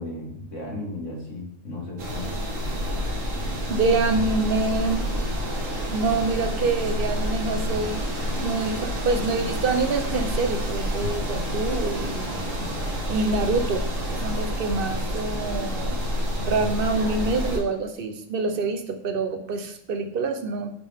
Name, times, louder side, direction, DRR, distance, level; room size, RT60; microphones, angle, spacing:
voice 1, 0.0-2.3, left 2 dB, 65° left, -2 dB, 2.1 m, -35 dB
sound 1, 2.0-17.6, equal, 70° right, 1.8 m, -28 dB
voice 2, 3.7-5.1 5.9-8.0 8.3-12.4 13.1-13.8 14.1-16.0 16.4-20.7, right 3 dB, 50° right, 7 dB, 0.8 m, -26 dB
sound 2, 4.8-16.9, right 2 dB, 90° right, 1.2 m, -45 dB
9.9 x 3.7 x 3.5 m, 0.79 s
omnidirectional pair, 1.4 m